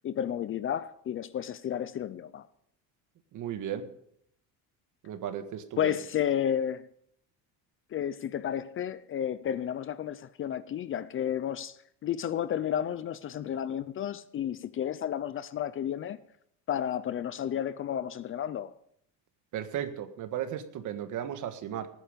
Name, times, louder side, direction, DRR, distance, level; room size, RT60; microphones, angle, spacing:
voice 1, 0.0-2.5 5.8-6.9 7.9-16.2 16.7-18.7, left 9 dB, 35° left, 0.5 m, -32 dB
voice 2, 3.3-3.9 5.0-6.0 19.5-21.9, right 10 dB, 55° right, 1.7 m, -35 dB
19.0 x 9.5 x 5.1 m
cardioid pair, 145°, 37 cm